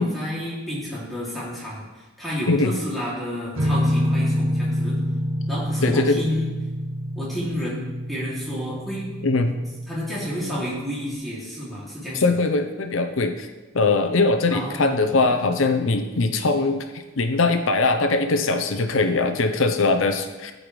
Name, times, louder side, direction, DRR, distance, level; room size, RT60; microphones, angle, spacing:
voice 1, 0.0-5.0 5.5-6.5 7.2-9.1 9.9-12.3 14.5-15.3, equal, ahead, -8 dB, 2.5 m, -30 dB
sound 1, 3.6-11.1, equal, 90° right, 1.5 m, -27 dB
voice 2, 5.8-6.2 9.2-9.6 12.2-13.5 13.7-16.8 17.2-20.5, left 3 dB, 70° left, 7 dB, 0.7 m, -21 dB
13.5 x 5.2 x 3.2 m, 1.2 s
head